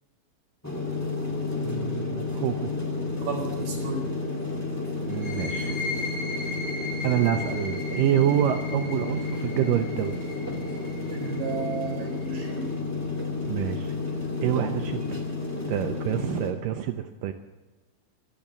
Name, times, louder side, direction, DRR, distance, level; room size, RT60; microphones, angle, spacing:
sound 1, 0.6-16.5, left 3 dB, 10° left, 0.8 m, -31 dB
voice 1, 1.6-2.7 5.1-5.8 7.0-10.2 13.5-13.9 14.4-15.2 15.7-17.3, right 11 dB, 80° right, 7 dB, 2.0 m, -27 dB
voice 2, 3.2-4.1 11.1-12.7, right 4 dB, 65° right, 2 dB, 5.6 m, -33 dB
sound 2, 5.1-12.5, left 3 dB, 60° left, 5.8 m, -38 dB
23.0 x 7.8 x 7.2 m, 1.2 s
omnidirectional pair, 4.4 m